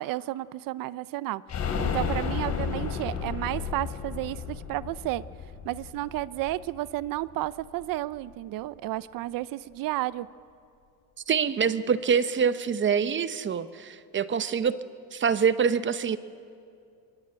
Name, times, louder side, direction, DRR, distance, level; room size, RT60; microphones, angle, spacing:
voice 1, 0.0-1.4 1.8-5.2 5.6-10.3, right 16 dB, 60° right, 17 dB, 0.7 m, -32 dB
sound 1, 1.5-7.1 7.4-7.5 7.8-7.9, left 6 dB, 45° left, 3.3 m, -32 dB
voice 2, 11.3-14.8 15.1-16.2, right 6 dB, 30° right, 13 dB, 0.9 m, -25 dB
23.0 x 22.5 x 8.9 m, 2.4 s
cardioid pair, 115°, 37 cm